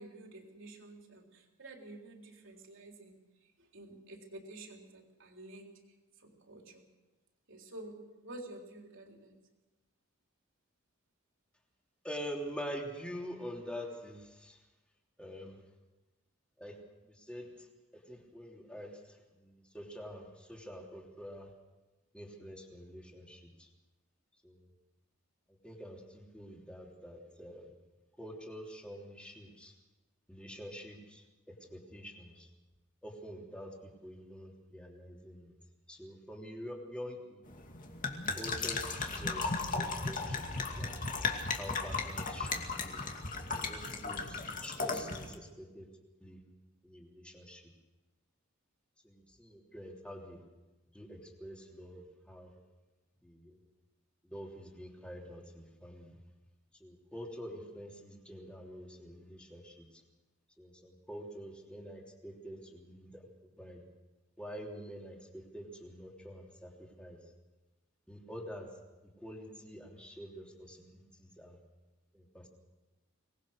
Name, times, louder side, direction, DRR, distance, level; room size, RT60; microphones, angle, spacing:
voice 1, 0.0-3.2 3.6-5.8 6.2-6.8 7.5-9.4, right 2 dB, 60° right, 2 dB, 3.8 m, -50 dB
voice 2, 12.0-14.6 15.2-15.6 16.6-16.8 17.0-17.7 17.9-21.5 22.1-23.7 24.4-24.7 25.6-27.7 28.2-29.7 30.3-32.5 33.0-35.5 35.9-37.5 38.3-40.9 41.6-43.0 43.5-45.9 46.2-46.4 46.8-47.6 49.0-50.4 50.9-52.5 53.2-53.6 54.2-56.2 56.8-60.0 60.6-63.8 64.4-67.2 68.1-68.7 69.0-71.6 72.1-72.5, equal, 5° left, 0 dB, 3.2 m, -46 dB
sound 1, 37.5-45.3, left 4 dB, 40° left, 2.4 m, -36 dB
24.5 x 19.5 x 6.6 m, 1.1 s
head